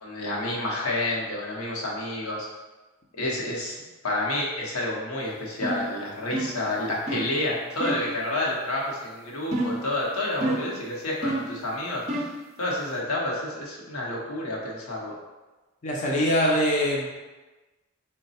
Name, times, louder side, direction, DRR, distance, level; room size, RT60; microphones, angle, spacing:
voice 1, 0.0-2.5 3.2-3.8 4.0-12.2 12.6-15.1, left 1 dB, 90° left, -3 dB, 0.9 m, -29 dB
sound 1, 5.6-5.9 6.3-6.6 7.1-7.3 7.8-8.1 9.5-9.9 10.4-10.8 11.2-11.6 12.1-12.4, right 1 dB, 30° right, 0.5 m, -29 dB
voice 2, 15.8-17.1, equal, 35° left, -3 dB, 0.5 m, -23 dB
3.9 x 2.2 x 4.1 m, 1.2 s
head